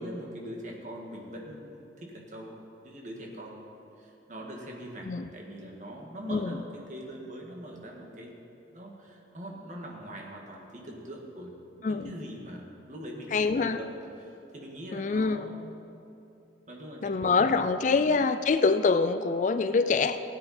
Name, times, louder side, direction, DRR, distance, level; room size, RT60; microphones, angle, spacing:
voice 1, 0.0-3.7 4.0-8.3 8.7-13.9 14.2-15.8 16.7-17.6 17.9-18.0, equal, 45° right, -1 dB, 1.7 m, -42 dB
voice 2, 11.8-12.1 13.3-13.8 14.9-15.5 17.0-20.2, left 4 dB, 45° left, 11 dB, 0.4 m, -25 dB
16.5 x 9.1 x 4.3 m, 2.7 s
head